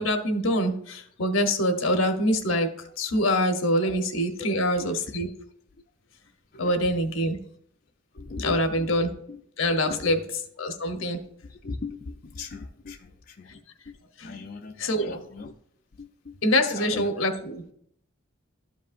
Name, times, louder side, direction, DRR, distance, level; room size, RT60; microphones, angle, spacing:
voice 1, 0.0-2.7 3.0-5.3 6.6-7.4 8.4-9.1 9.6-10.2 10.6-11.2 14.2-14.4 14.8-15.2 16.4-17.7, equal, 80° left, 6 dB, 1.0 m, -25 dB
voice 2, 4.4-4.9 6.5-6.7 7.2-7.3 8.1-8.9 9.3-9.4 9.9-10.2 11.5-13.6 14.2-15.5 16.0-16.4 16.8-17.1, left 3 dB, 45° left, 3 dB, 0.5 m, -39 dB
12.5 x 5.2 x 2.6 m, 0.68 s
head